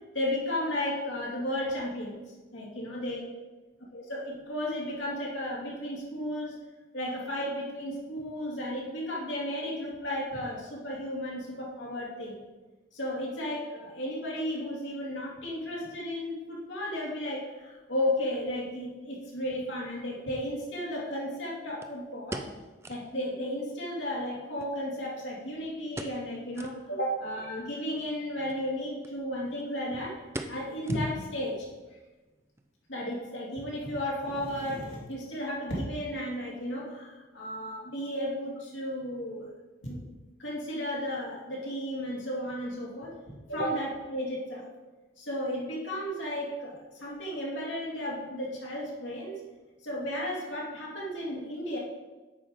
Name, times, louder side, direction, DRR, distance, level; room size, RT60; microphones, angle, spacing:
voice 1, 0.1-2.2 2.5-3.2 3.9-6.6 6.9-12.4 12.9-22.5 22.9-31.7 32.9-39.4 39.8-40.1 40.4-43.1 43.5-44.7 45.2-49.4 49.8-51.8, left 1 dB, 90° left, -4 dB, 2.4 m, -34 dB
sound 1, 19.7-19.8 21.8-23.2 23.5-23.6 23.9-24.0 24.6-25.5 25.9-26.3 26.5-26.8 27.3-27.4 28.4-28.6 29.0-29.2 29.4-29.8 30.3-31.4 31.7-31.8 32.4-32.7 33.0-33.1, right 1 dB, 15° right, 0.4 m, -42 dB
8.6 x 3.7 x 6.3 m, 1.2 s
head